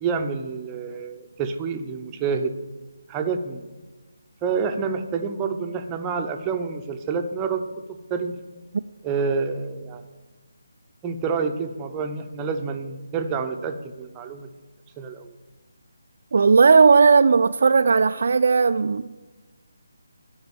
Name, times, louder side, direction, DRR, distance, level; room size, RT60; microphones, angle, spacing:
voice 1, 0.0-2.5 3.1-3.7 4.4-8.3 9.0-10.0 11.0-14.5 15.0-15.3, right 5 dB, 15° right, 0.7 m, -28 dB
voice 2, 16.3-19.2, right 5 dB, 55° right, 0.3 m, -16 dB
12.0 x 5.5 x 7.2 m
figure-of-eight pair, 150°, 0 cm